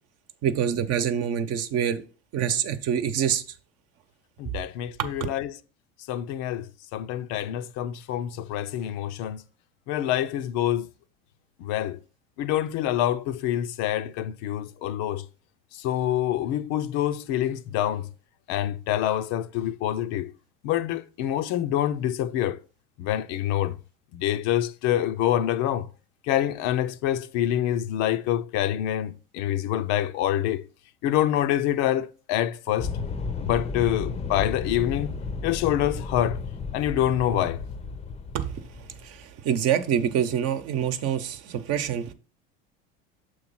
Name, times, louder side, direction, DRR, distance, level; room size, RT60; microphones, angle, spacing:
voice 1, 0.4-2.0 2.3-3.4 5.0-5.1 38.3-38.6 39.0-42.1, right 9 dB, 55° right, 0.9 m, -26 dB
voice 2, 4.4-5.5 6.1-9.4 9.9-10.9 11.6-12.0 12.4-15.2 15.8-18.1 18.5-20.3 20.6-22.6 23.0-23.7 24.1-25.9 26.3-30.6 31.0-32.9 33.4-35.2 35.4-36.4 36.7-37.6, left 12 dB, 60° left, 0.6 m, -26 dB
sound 1, 32.8-39.2, left 4 dB, 20° left, 0.6 m, -33 dB
6.6 x 3.1 x 5.7 m
hypercardioid pair, 90°, 30 cm